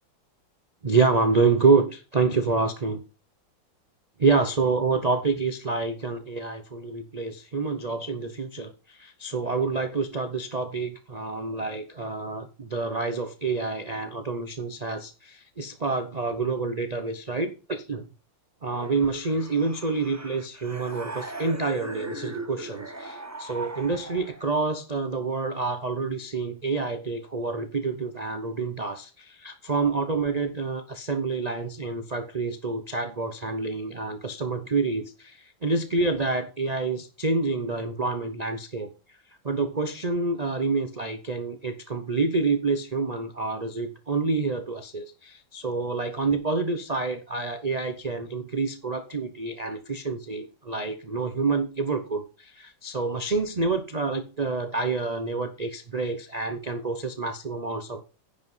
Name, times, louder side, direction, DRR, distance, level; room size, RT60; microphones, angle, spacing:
voice 1, 0.8-3.0 4.2-18.0 18.6-38.9 39.4-58.0, right 4 dB, 65° right, 0.4 m, -27 dB
sound 1, 18.7-24.6, right 2 dB, 15° right, 0.6 m, -39 dB
10.0 x 5.4 x 5.5 m
omnidirectional pair, 2.0 m